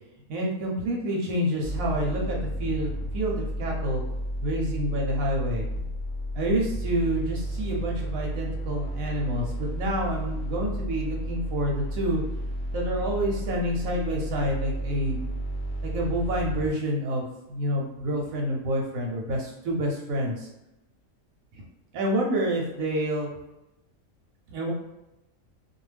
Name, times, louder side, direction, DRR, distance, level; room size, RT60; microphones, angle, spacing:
voice 1, 0.3-4.0 4.4-5.7 6.3-12.2 12.7-15.2 15.8-20.5 21.5-21.6 21.9-23.3 24.5-24.7, right 1 dB, 85° right, -1 dB, 1.0 m, -28 dB
sound 1, 1.6-16.7, equal, 80° left, 1.0 m, -32 dB
2.4 x 2.3 x 3.2 m, 0.93 s
omnidirectional pair, 1.4 m